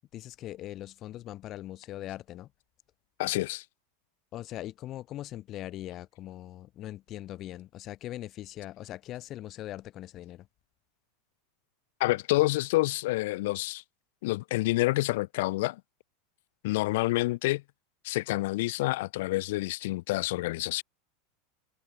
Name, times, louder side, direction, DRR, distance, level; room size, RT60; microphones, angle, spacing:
voice 1, 0.1-2.5 4.3-10.5, left 14 dB, 40° left, 0.9 m, -41 dB
voice 2, 3.2-3.6 12.0-13.8 14.2-15.8 16.6-17.6 18.0-20.8, left 19 dB, 70° left, 0.4 m, -28 dB
supercardioid pair, 120°, 0 cm